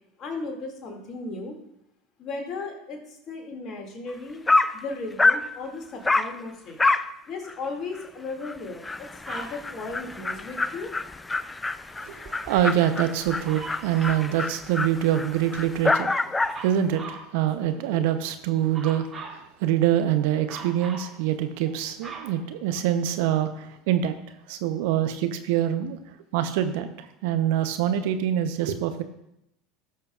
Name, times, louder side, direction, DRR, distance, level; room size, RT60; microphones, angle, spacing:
voice 1, 0.2-1.6 2.2-4.4 4.7-6.8 7.3-10.9 17.7-18.0, left 3 dB, 40° left, 2 dB, 2.3 m, -36 dB
Dog, 4.1-4.2 4.5-4.8 5.2-5.5 6.0-6.3 6.8-7.1 7.5-7.6 8.0-8.1 8.4-8.5 8.8-16.6, left 3 dB, 15° left, 0.4 m, -26 dB
Dog 2, 9.2-9.6 13.4-14.3 16.4-17.3 18.7-19.4 20.5-21.1 21.6-23.2 23.9-24.0, right 4 dB, 20° right, 3.9 m, -40 dB
voice 2, 12.0-16.3 16.6-24.1 24.5-26.0 26.3-29.0, right 11 dB, 65° right, 9 dB, 0.7 m, -25 dB
17.5 x 6.6 x 2.4 m, 0.82 s
figure-of-eight pair, 75°, 0 cm